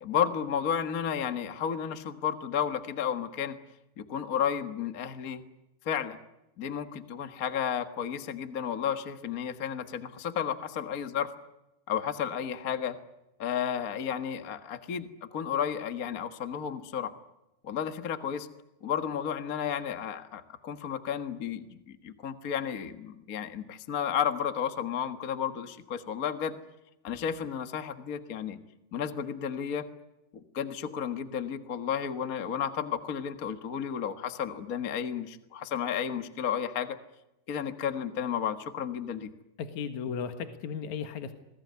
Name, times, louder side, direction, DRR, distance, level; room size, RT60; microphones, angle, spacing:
voice 1, 0.0-3.6 4.0-5.4 5.8-6.2 6.6-11.3 11.9-13.0 13.4-17.1 17.6-18.5 18.8-26.6 27.0-28.6 28.9-29.8 30.3-37.0 37.5-39.3, left 8 dB, 45° left, 9 dB, 1.2 m, -32 dB
voice 2, 39.6-41.3, left 7 dB, 65° left, 8 dB, 3.0 m, -35 dB
28.0 x 21.0 x 9.6 m, 0.92 s
omnidirectional pair, 3.7 m